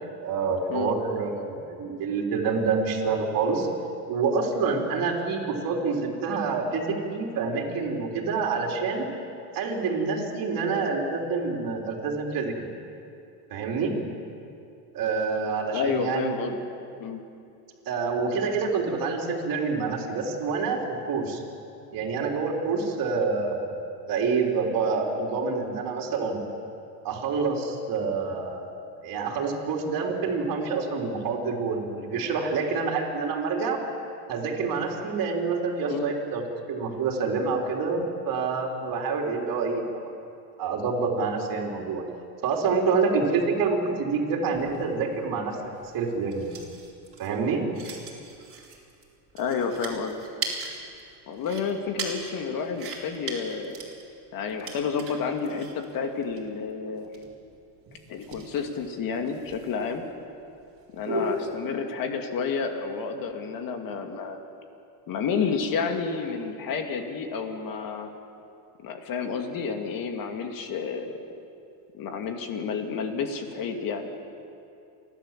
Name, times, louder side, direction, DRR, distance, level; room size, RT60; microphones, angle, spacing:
voice 1, 0.2-3.7 4.1-9.1 9.5-12.7 13.5-13.9 14.9-16.6 17.9-21.4 21.9-26.4 27.0-28.8 29.0-33.8 34.3-36.4 36.7-39.9 40.6-42.0 42.4-45.6 45.9-46.5 47.2-47.6, right 4 dB, 45° right, -1 dB, 3.8 m, -27 dB
voice 2, 15.7-16.7 17.0-17.2 35.9-36.1 49.4-50.2 51.3-53.8 54.3-57.1 58.1-60.0 60.9-64.4 65.1-68.1 68.8-71.1 71.9-74.1, left 5 dB, 45° left, 5 dB, 2.3 m, -30 dB
sound 1, 44.5-61.6, right 2 dB, 25° right, 4.1 m, -38 dB
29.5 x 12.0 x 7.5 m, 2.6 s
supercardioid pair, 130°, 49 cm